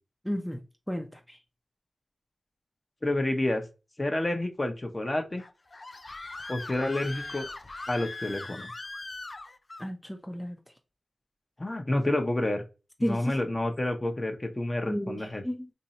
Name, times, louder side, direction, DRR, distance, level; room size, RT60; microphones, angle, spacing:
voice 1, 0.2-0.6 0.9-1.4 9.8-10.6 13.0-13.4 14.9-15.7, equal, 5° left, 0.6 m, -32 dB
voice 2, 3.0-3.6 4.0-5.4 6.5-7.5 7.9-8.7 11.6-12.6 13.0-15.4, left 1 dB, 30° left, 0.8 m, -29 dB
Screaming, 5.4-9.9, left 2 dB, 50° left, 0.4 m, -40 dB
2.7 x 2.7 x 4.1 m
cardioid pair, 45°, 0 cm